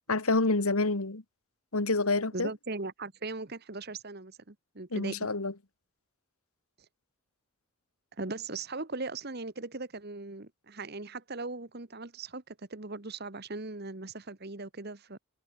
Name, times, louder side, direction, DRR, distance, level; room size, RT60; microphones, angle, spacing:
voice 1, 0.1-1.2 1.7-2.5 4.9-5.5, left 3 dB, 75° left, 1.8 m, -27 dB
voice 2, 2.3-5.3 8.2-15.2, right 3 dB, 45° right, 1.3 m, -39 dB
head